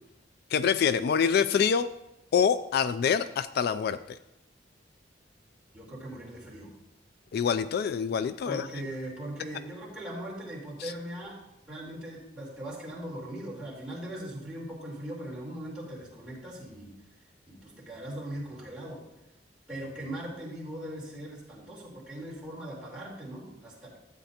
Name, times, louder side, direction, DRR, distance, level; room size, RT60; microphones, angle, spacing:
voice 1, 0.5-1.9 2.3-4.2 7.3-8.7, left 7 dB, 60° left, 13 dB, 0.3 m, -25 dB
voice 2, 5.7-6.7 8.4-11.4 11.7-16.9 17.5-19.0 19.7-24.0, right 1 dB, 5° right, -8 dB, 3.6 m, -40 dB
13.5 x 8.3 x 2.8 m, 0.90 s
head